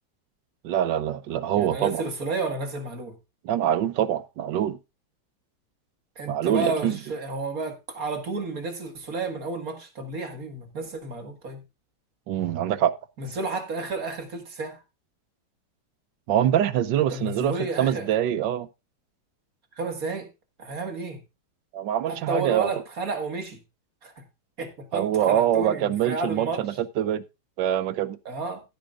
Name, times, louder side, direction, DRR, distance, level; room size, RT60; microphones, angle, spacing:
voice 1, 0.6-2.0 3.4-4.8 6.3-7.0 12.3-12.9 16.3-18.7 21.7-22.7 24.9-27.2 27.6-28.2, right 10 dB, 85° right, 1.4 m, -24 dB
voice 2, 1.6-3.1 6.2-11.6 13.2-14.8 17.1-18.1 19.8-20.3 20.6-21.2 22.1-23.6 24.0-24.1 24.6-26.8 28.3-28.6, right 3 dB, 55° right, 2.2 m, -31 dB
15.0 x 8.9 x 2.5 m
omnidirectional pair, 1.9 m